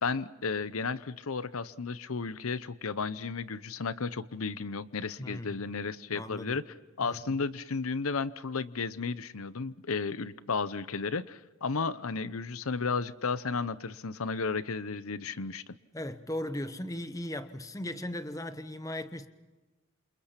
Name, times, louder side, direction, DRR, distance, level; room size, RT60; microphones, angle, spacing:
voice 1, 0.0-6.6 7.0-15.7, left 4 dB, 80° left, 0.8 m, -33 dB
voice 2, 5.2-5.6 6.1-6.6 7.0-7.2 15.9-19.3, left 1 dB, 15° left, 1.1 m, -37 dB
28.5 x 28.0 x 5.9 m
head